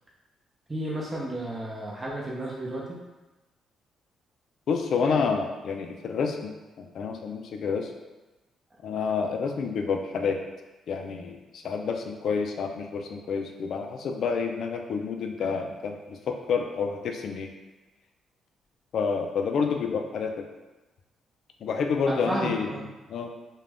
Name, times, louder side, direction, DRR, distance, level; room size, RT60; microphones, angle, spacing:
voice 1, 0.7-2.8 22.1-22.8, right 1 dB, 20° right, -4 dB, 0.5 m, -32 dB
voice 2, 4.7-7.9 8.8-10.4 10.9-17.5 18.9-20.4 21.6-22.7 23.1-23.3, left 5 dB, 65° left, 4 dB, 0.3 m, -29 dB
2.5 x 2.2 x 3.3 m, 1.1 s
cardioid pair, 90°, 0 cm